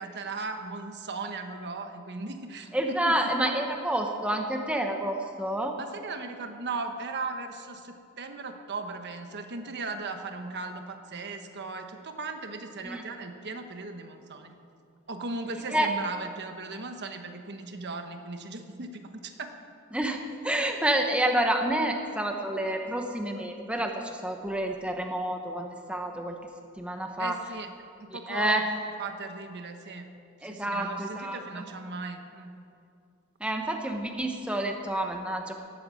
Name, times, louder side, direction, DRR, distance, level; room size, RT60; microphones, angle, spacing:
voice 1, 0.0-3.3 5.8-14.5 15.1-19.5 27.2-27.7 28.0-28.6 29.0-30.2 30.4-32.5, right 3 dB, 50° right, 6 dB, 1.2 m, -37 dB
voice 2, 2.7-5.8 12.8-13.0 15.7-15.9 19.9-26.4 26.8-27.4 28.1-28.6 30.4-31.6 33.4-35.5, right 1 dB, 5° right, 3 dB, 1.0 m, -29 dB
19.0 x 8.7 x 7.7 m, 2.4 s
head